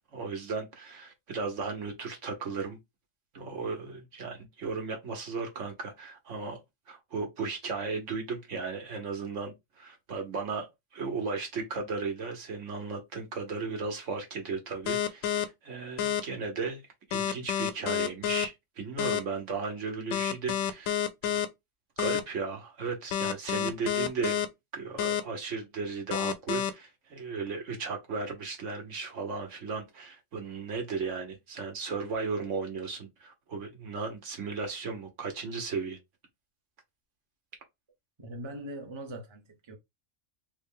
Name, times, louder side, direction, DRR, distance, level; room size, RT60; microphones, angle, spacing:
voice 1, 0.1-2.8 3.3-6.6 6.9-16.8 17.1-21.3 22.0-24.4 24.7-36.0, right 4 dB, 70° right, 1.3 m, -35 dB
sound 1, 14.9-15.4 16.0-16.2 17.1-18.5 19.0-19.2 20.1-21.5 22.0-22.2 23.1-24.5 25.0-25.2 26.1-26.7, left 10 dB, 85° left, 1.0 m, -28 dB
voice 2, 38.2-39.7, right 1 dB, 30° right, 0.7 m, -41 dB
3.6 x 2.2 x 3.6 m
omnidirectional pair, 1.3 m